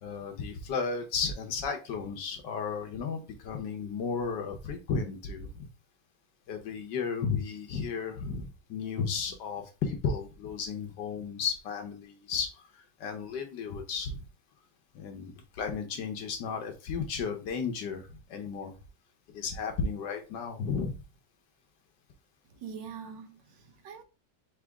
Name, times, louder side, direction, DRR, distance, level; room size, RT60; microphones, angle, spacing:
voice 1, 0.0-5.7 6.5-14.2 14.9-18.8 19.3-20.9, left 5 dB, 85° left, 1.6 m, -34 dB
voice 2, 22.5-24.0, right 6 dB, 90° right, 1.5 m, -44 dB
5.0 x 2.9 x 3.5 m
omnidirectional pair, 1.9 m